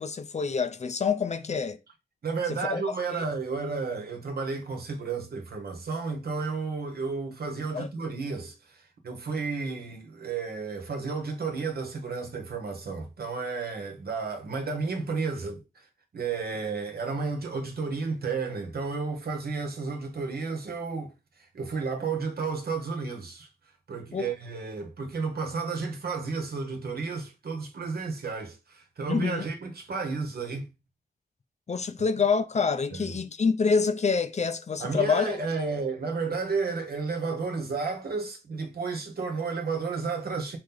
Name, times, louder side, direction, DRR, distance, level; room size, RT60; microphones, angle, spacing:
voice 1, 0.0-1.8 2.6-3.2 7.7-7.9 24.1-24.3 29.1-29.4 31.7-35.4, left 5 dB, 45° left, 0.5 m, -27 dB
voice 2, 2.2-15.8 16.1-23.5 23.9-30.7 32.9-33.1 34.8-40.6, right 4 dB, 75° right, 1.2 m, -32 dB
4.7 x 2.9 x 3.8 m
wide cardioid pair, 100°, 16 cm